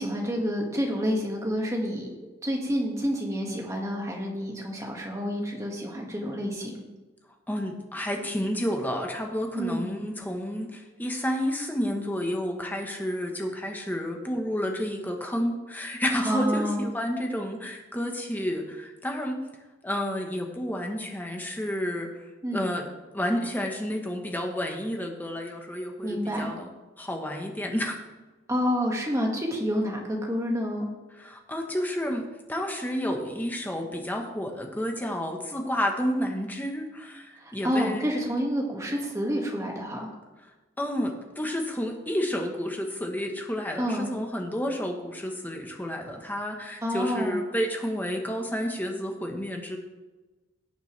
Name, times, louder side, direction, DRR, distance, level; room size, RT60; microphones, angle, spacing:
voice 1, 0.0-2.1 2.4-6.8 9.5-9.9 16.2-16.8 22.4-22.6 26.0-26.5 28.5-30.9 37.4-40.1 43.8-44.1 46.8-47.4, equal, 15° right, -1 dB, 2.0 m, -28 dB
voice 2, 7.5-19.5 19.8-22.1 22.5-22.8 23.1-26.7 27.0-28.0 31.2-38.0 40.8-49.8, equal, 10° left, 2 dB, 1.2 m, -30 dB
17.5 x 7.0 x 3.4 m, 1.2 s
head